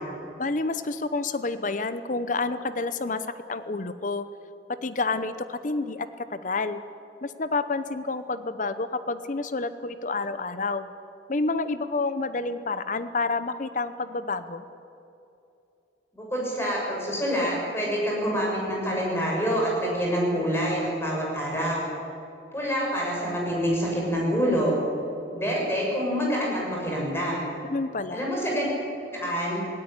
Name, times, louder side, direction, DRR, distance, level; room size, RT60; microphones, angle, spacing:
voice 1, 0.4-4.3 4.8-6.8 7.2-10.9 11.3-14.6 27.6-28.2, left 3 dB, 45° left, 12 dB, 0.8 m, -29 dB
voice 2, 16.1-21.9 22.5-24.8 25.3-27.5 28.1-28.7 29.1-29.6, equal, 15° left, -3 dB, 6.6 m, -26 dB
18.0 x 17.5 x 9.8 m, 2.7 s
head